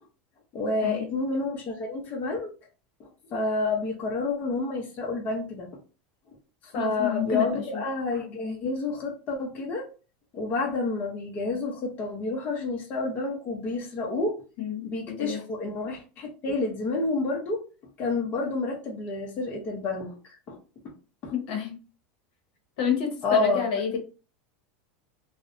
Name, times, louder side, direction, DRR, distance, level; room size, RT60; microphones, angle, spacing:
voice 1, 0.5-2.5 3.0-5.7 6.6-9.9 10.3-14.4 14.8-17.6 18.0-20.2 20.5-20.6 21.2-21.3 23.2-23.6, left 3 dB, 35° left, 0 dB, 0.7 m, -29 dB
voice 2, 6.7-7.8 14.6-15.4 21.3-21.7 22.8-24.0, left 7 dB, 70° left, 3 dB, 0.9 m, -29 dB
2.5 x 2.1 x 2.5 m, 0.34 s
supercardioid pair, 135°, 5 cm